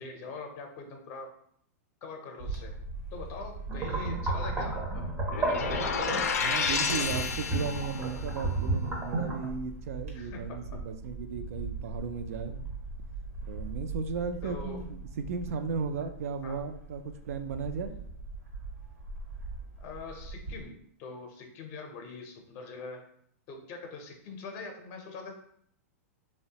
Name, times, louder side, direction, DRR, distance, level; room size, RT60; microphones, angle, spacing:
voice 1, 0.0-1.3 2.0-2.8 3.1-5.9 6.4-6.7 10.1-10.8 14.4-14.9 16.4-16.6 19.8-23.0 23.5-25.3, left 4 dB, 35° left, 3 dB, 0.5 m, -43 dB
Bird / Wind, 2.4-20.6, right 3 dB, 90° right, 1.1 m, -41 dB
sound 1, 3.7-9.5, right 2 dB, 20° right, 0.5 m, -33 dB
sound 2, 5.3-8.1, left 5 dB, 90° left, 0.4 m, -30 dB
voice 2, 6.4-12.7 13.4-18.0, right 5 dB, 70° right, 9 dB, 0.4 m, -35 dB
3.0 x 2.1 x 2.8 m, 0.67 s
hypercardioid pair, 145°, 8 cm